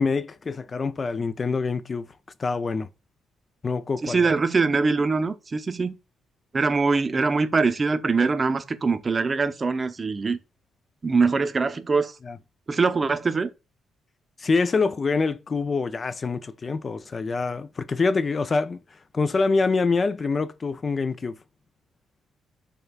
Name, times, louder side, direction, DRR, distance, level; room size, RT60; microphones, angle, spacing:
voice 1, 0.0-2.1 2.4-2.9 3.6-4.3 12.2-12.4 14.4-21.4, left 4 dB, 40° left, 0.3 m, -25 dB
voice 2, 4.0-5.9 6.5-10.4 11.0-12.1 12.7-13.5, right 4 dB, 35° right, 0.5 m, -23 dB
6.4 x 2.3 x 2.3 m
supercardioid pair, 60°, 0 cm